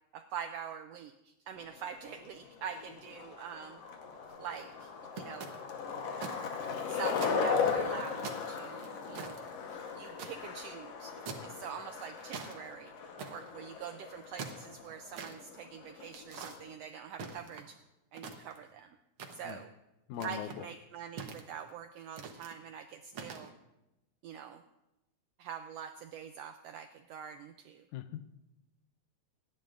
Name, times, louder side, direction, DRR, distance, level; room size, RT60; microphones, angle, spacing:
voice 1, 0.1-3.8 4.4-4.9 5.2-5.5 6.9-9.4 9.9-12.9 13.3-17.8 18.1-18.9 19.3-19.7 20.2-23.5 24.2-24.6 25.4-27.8, right 7 dB, 90° right, 8 dB, 1.4 m, -44 dB
Skateboard, 1.6-16.7, left 5 dB, 65° left, 2.0 m, -38 dB
sound 1, 4.2-4.6 5.2-6.4 6.7-6.8 7.2-7.9 8.2-10.3 11.2-11.6 12.0-12.6 13.2-13.5 14.1-15.3 16.1-16.6 17.1-17.8 18.1-18.7 19.2-19.6 20.1-20.6 21.2-21.7 22.2-22.5 23.1-23.5, right 5 dB, 60° right, 1.6 m, -44 dB
voice 2, 20.1-20.7 27.9-28.4, left 10 dB, 85° left, 11 dB, 2.1 m, -41 dB
26.5 x 10.5 x 2.5 m, 0.95 s
omnidirectional pair, 3.4 m